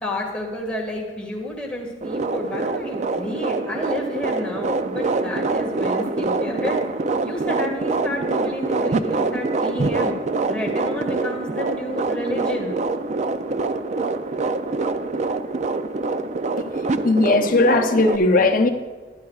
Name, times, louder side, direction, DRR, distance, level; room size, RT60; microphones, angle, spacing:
voice 1, 0.0-6.8 7.2-10.1 10.5-12.8, left 1 dB, 5° left, -2 dB, 1.8 m, -30 dB
sound 1, 2.0-18.2, right 3 dB, 40° right, 0.4 m, -25 dB
voice 2, 17.0-18.7, left 2 dB, 50° left, 5 dB, 0.8 m, -17 dB
14.5 x 11.5 x 2.4 m, 1.4 s
head